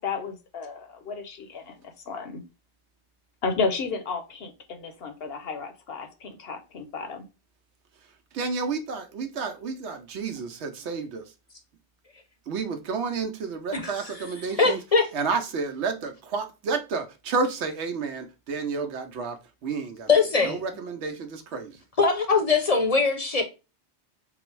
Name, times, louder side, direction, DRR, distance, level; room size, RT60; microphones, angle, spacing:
voice 1, 0.0-2.4 3.4-7.2, left 4 dB, 65° left, 0.9 m, -32 dB
voice 2, 8.3-11.2 12.5-14.8 15.1-20.1 20.4-21.8, right 4 dB, 80° right, 1.0 m, -30 dB
voice 3, 13.7-14.2 14.6-15.1 20.1-20.6 22.0-23.4, left 4 dB, 40° left, 0.7 m, -22 dB
3.9 x 2.0 x 4.4 m
omnidirectional pair, 1.2 m